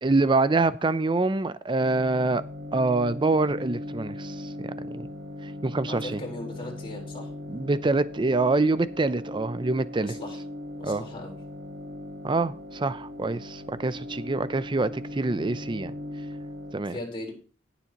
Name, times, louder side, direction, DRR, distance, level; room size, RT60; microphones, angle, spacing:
voice 1, 0.0-2.4 2.7-4.5 5.0-5.1 5.6-6.2 7.5-10.2 10.8-11.0 12.2-15.9 16.7-17.0, right 3 dB, 25° right, 0.5 m, -25 dB
sound 1, 1.8-16.7, left 1 dB, 70° right, 1.3 m, -39 dB
voice 2, 5.8-7.3 10.0-10.4 10.8-11.4 16.9-17.3, left 1 dB, 30° left, 4.0 m, -38 dB
17.5 x 7.0 x 2.9 m
head